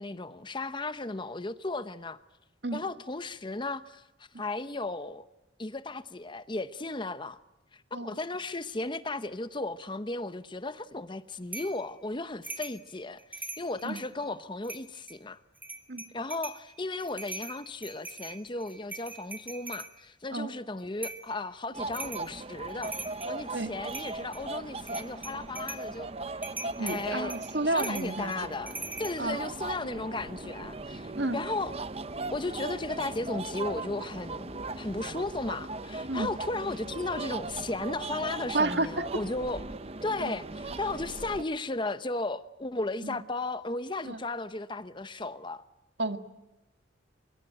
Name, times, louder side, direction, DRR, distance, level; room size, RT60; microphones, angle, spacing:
voice 1, 0.0-2.2 2.7-4.0 4.4-5.3 5.6-7.4 7.7-15.4 16.1-23.0 23.3-26.1 26.8-27.3 27.6-31.8 32.3-39.6 40.0-45.6, left 2 dB, 25° left, 0.8 m, -35 dB
sound 1, 11.5-11.8 12.4-12.8 13.2-14.1 14.6-15.2 15.6-16.6 17.0-19.9 21.0-21.3 21.9-22.3 22.7-23.4 23.9-24.4 24.8-25.9 26.4-29.2, right 3 dB, 10° right, 2.3 m, -41 dB
sound 2, 21.7-41.4, right 2 dB, 30° right, 0.8 m, -38 dB
voice 2, 26.8-28.3 29.2-29.4 31.2-31.4 36.1-36.3 38.5-38.9 40.2-40.3 43.0-43.2 44.1-44.2 46.0-46.2, right 2 dB, 60° right, 1.9 m, -30 dB
24.5 x 23.5 x 9.0 m
head